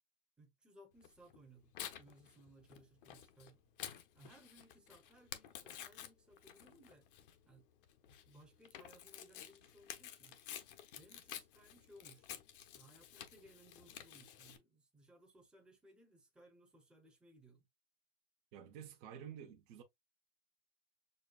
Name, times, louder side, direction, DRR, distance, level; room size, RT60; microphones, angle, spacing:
voice 1, 0.4-3.6 4.1-7.1 7.5-7.7 8.2-10.4 10.9-12.4 12.7-17.7, right 1 dB, 5° right, 0.9 m, -63 dB
Tearing, 1.0-14.6, left 10 dB, 60° left, 0.8 m, -52 dB
voice 2, 18.5-19.8, right 9 dB, 35° right, 0.7 m, -51 dB
6.6 x 2.2 x 2.3 m
supercardioid pair, 145°, 30 cm